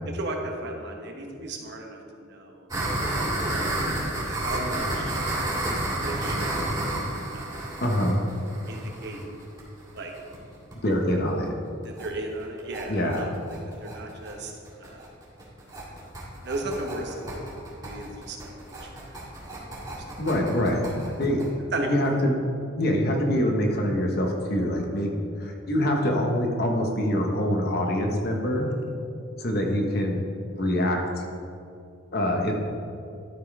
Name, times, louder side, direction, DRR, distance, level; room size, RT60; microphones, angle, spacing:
voice 1, 0.1-2.7 3.5-3.7 4.2-5.2 6.0-6.7 7.3-7.8 8.7-9.2 9.9-10.1 11.8-13.3 13.8-14.5 14.8-15.1 16.4-17.4 17.8-18.5 18.8-19.2 19.7-19.9 21.7-22.0, right 2 dB, 55° right, 2 dB, 1.1 m, -35 dB
sound 1, 2.7-10.3 10.7-10.8 11.1-11.2 11.5-11.6 11.8-12.1 12.4-21.5, right 1 dB, 20° right, 2.2 m, -31 dB
voice 2, 7.8-8.2 10.8-11.5 12.9-13.3 20.2-20.8 21.2-21.4 21.9-22.3 22.8-25.1 25.4-28.7 29.4-30.2 30.6-31.2 32.1-32.6, equal, 50° left, 1 dB, 1.1 m, -24 dB
12.0 x 4.3 x 4.7 m, 2.6 s
head